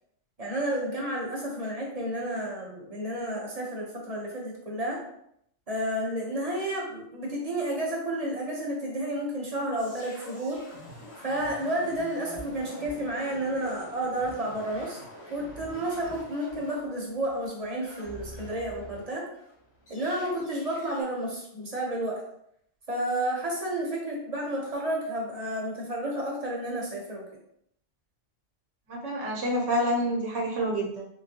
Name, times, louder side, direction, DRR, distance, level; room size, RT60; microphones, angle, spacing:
voice 1, 0.4-5.0 5.7-10.6 11.2-15.0 15.3-19.2 19.9-22.2 22.9-27.3, right 1 dB, 35° right, -3 dB, 0.8 m, -31 dB
sound 1, 9.8-19.0 19.3-21.0, equal, 75° left, 2.0 m, -46 dB
voice 2, 28.9-31.1, equal, 70° right, -2 dB, 1.0 m, -28 dB
3.8 x 2.2 x 2.8 m, 0.72 s
omnidirectional pair, 1.2 m